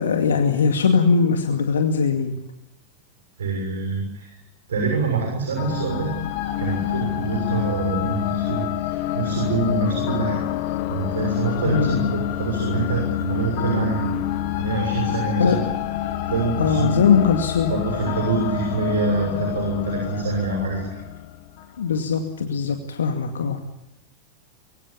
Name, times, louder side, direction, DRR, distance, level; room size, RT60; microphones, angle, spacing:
voice 1, 0.0-2.3 11.6-12.1 15.4-15.6 16.6-17.7 21.8-23.6, left 5 dB, 65° left, 5 dB, 2.3 m, -20 dB
voice 2, 3.4-4.3 4.7-6.1 6.6-10.4 10.9-14.1 14.6-15.6 16.3-17.2 17.6-21.0, right 4 dB, 65° right, 2 dB, 6.4 m, -25 dB
sound 1, 5.6-21.8, left 13 dB, 45° left, 2.2 m, -27 dB
25.0 x 23.0 x 8.7 m, 0.87 s
figure-of-eight pair, 90°, 0 cm